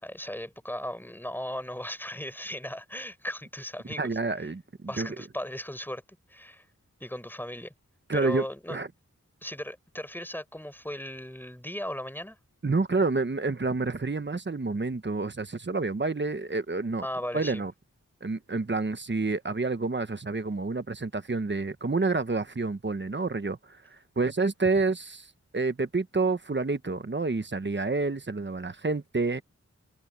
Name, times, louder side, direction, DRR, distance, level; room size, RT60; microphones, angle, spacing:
voice 1, 0.0-4.1 4.4-4.5 4.9-6.0 6.3-6.6 7.0-7.7 8.1-8.8 9.4-12.4 17.0-17.6, left 1 dB, 5° left, 4.6 m, -37 dB
voice 2, 4.0-5.1 8.1-8.9 12.6-17.1 17.3-17.7 18.2-25.3 25.5-29.4, right 3 dB, 40° right, 1.1 m, -29 dB
wide cardioid pair, 80°, 30 cm